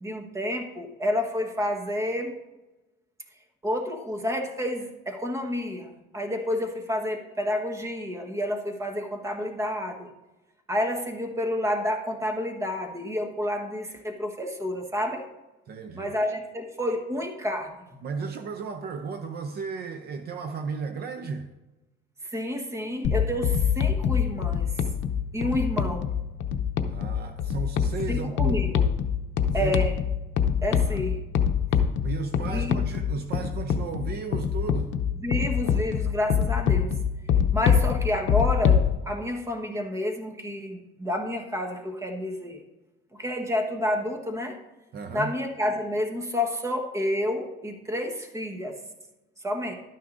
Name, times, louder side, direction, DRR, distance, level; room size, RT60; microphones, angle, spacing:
voice 1, 0.0-2.3 3.6-10.1 10.7-15.2 15.9-18.0 22.2-24.8 25.3-26.1 28.1-28.8 29.5-29.9 30.6-31.2 32.5-32.8 35.2-37.0 37.5-42.6 43.1-44.6 45.1-48.7 49.4-49.7, left 1 dB, 15° right, 1.3 m, -29 dB
voice 2, 15.7-16.1 18.0-21.5 26.9-28.7 29.6-29.8 30.7-31.0 32.0-34.9 44.9-45.3, right 5 dB, 50° right, 0.7 m, -34 dB
sound 1, 23.0-38.9, left 8 dB, 65° left, 0.7 m, -25 dB
12.0 x 9.3 x 2.6 m
cardioid pair, 130°, 21 cm